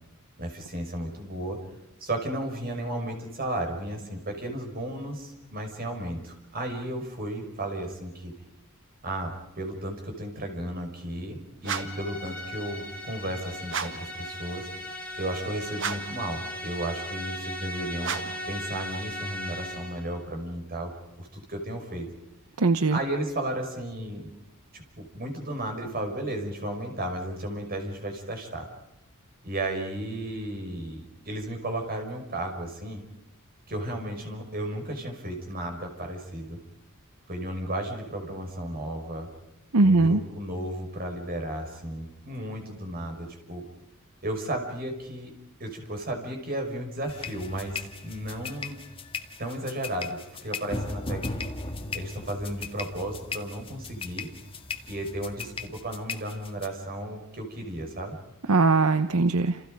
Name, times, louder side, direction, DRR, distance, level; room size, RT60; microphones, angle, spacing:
voice 1, 0.4-1.6 2.0-8.3 9.0-14.7 15.2-20.9 21.2-22.1 22.9-24.3 24.7-28.7 29.4-33.0 33.7-36.6 37.3-39.3 39.8-43.6 44.2-45.3 45.6-48.8 49.4-51.5 51.9-54.3 54.9-58.2, right 1 dB, 45° right, 4 dB, 5.8 m, -34 dB
sound 1, 11.6-12.1 13.7-14.1 15.7-16.2 18.0-18.5, right 6 dB, 60° right, 1.6 m, -33 dB
sound 2, 11.7-20.1, equal, 5° left, 6.9 m, -37 dB
voice 2, 22.6-23.0 39.7-40.2 58.5-59.6, right 3 dB, 75° right, 10 dB, 0.8 m, -20 dB
sound 3, 47.1-56.7, left 3 dB, 25° left, 1.8 m, -37 dB
30.0 x 29.0 x 5.3 m, 0.90 s
head